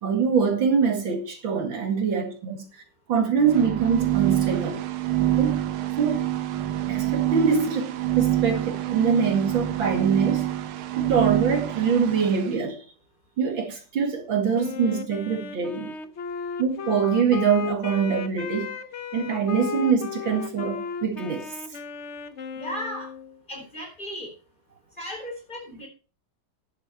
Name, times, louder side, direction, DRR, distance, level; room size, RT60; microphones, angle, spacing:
voice 1, 0.0-2.7 3.1-4.8 5.2-5.6 6.0-6.3 6.9-10.5 11.0-12.8 13.4-15.9 16.6-18.8 19.1-21.5, right 6 dB, 65° right, 2.8 m, -24 dB
sound 1, 3.4-12.5, right 14 dB, 85° right, 1.7 m, -26 dB
Wind instrument woodwind instrument, 14.5-23.4, left 7 dB, 55° left, 0.8 m, -35 dB
voice 2, 22.5-23.1 23.5-24.3 25.0-25.9, equal, 20° left, 4.2 m, -35 dB
10.5 x 8.7 x 4.6 m
omnidirectional pair, 2.3 m